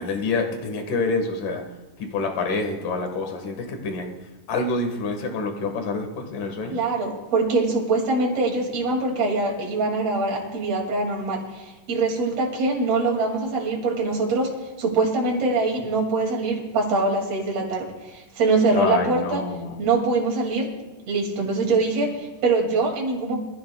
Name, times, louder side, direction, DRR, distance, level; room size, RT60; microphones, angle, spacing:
voice 1, 0.0-1.6 2.0-4.1 4.5-6.8 18.7-19.8, left 3 dB, 70° left, 3 dB, 3.1 m, -27 dB
voice 2, 6.7-14.5 14.8-19.4 19.8-20.7 21.1-23.3, right 3 dB, 50° right, -1 dB, 3.4 m, -23 dB
23.0 x 14.5 x 2.3 m, 1.2 s
omnidirectional pair, 3.9 m